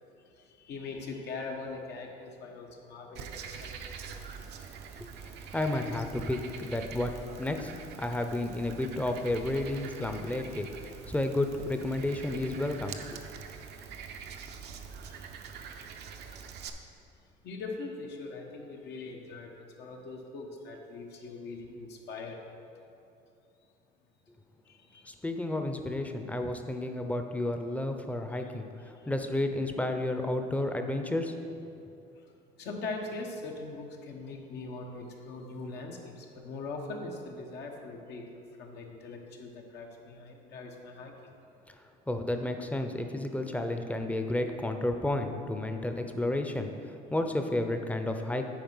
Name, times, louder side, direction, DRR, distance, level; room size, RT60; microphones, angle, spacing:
voice 1, 0.2-5.5 14.2-16.7 17.4-22.4 24.6-25.2 28.3-28.5 29.0-29.1 32.1-38.3 38.5-41.1, left 3 dB, 70° left, 1 dB, 1.2 m, -42 dB
Frog, 3.1-16.7, right 6 dB, 65° right, 0.7 m, -44 dB
voice 2, 5.5-7.1 7.4-7.7 8.0-13.2 25.1-31.7 42.1-48.5, left 1 dB, 10° left, 6 dB, 0.7 m, -32 dB
9.1 x 4.3 x 5.6 m, 2.6 s
supercardioid pair, 90°, 18 cm